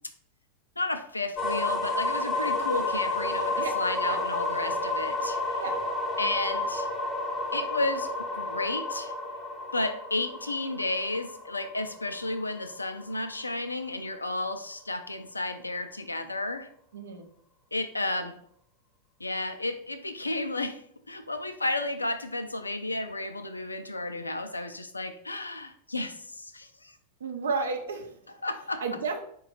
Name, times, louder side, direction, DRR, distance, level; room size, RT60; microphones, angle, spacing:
voice 1, 0.8-5.6 6.2-6.9 7.5-9.1 9.7-16.7 17.7-18.4 19.2-27.0 28.4-28.8, left 2 dB, 80° left, 9 dB, 0.4 m, -32 dB
sound 1, 1.4-13.2, left 2 dB, 25° left, 0.5 m, -31 dB
voice 2, 16.9-17.2 27.2-28.4 28.8-29.2, right 4 dB, 65° right, 4 dB, 0.6 m, -32 dB
4.7 x 2.3 x 3.8 m, 0.67 s
figure-of-eight pair, 90°, 0 cm